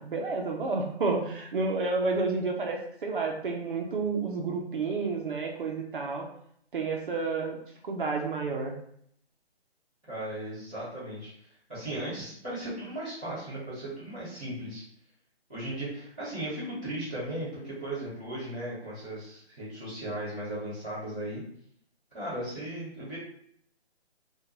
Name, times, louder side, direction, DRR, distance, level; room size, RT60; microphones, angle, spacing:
voice 1, 0.0-6.3 6.7-7.6 7.8-8.7, right 4 dB, 55° right, 1 dB, 0.5 m, -30 dB
voice 2, 10.1-11.3 11.7-14.8 15.5-21.4 22.1-23.2, right 1 dB, 10° left, -17 dB, 0.5 m, -36 dB
2.4 x 2.2 x 3.0 m, 0.67 s
hypercardioid pair, 165°, 33 cm